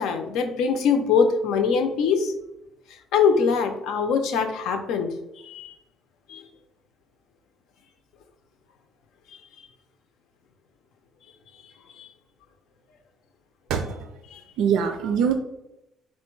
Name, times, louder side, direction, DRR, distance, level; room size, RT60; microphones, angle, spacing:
voice 1, 0.0-2.3 3.1-5.1 5.4-5.7 6.3-6.4 12.0-12.1 14.3-14.4, left 6 dB, 85° left, 6 dB, 0.6 m, -23 dB
voice 2, 13.7-14.1 14.6-15.3, right 7 dB, 75° right, 7 dB, 0.4 m, -23 dB
4.4 x 2.2 x 4.5 m, 0.87 s
cardioid pair, 170°, 0 cm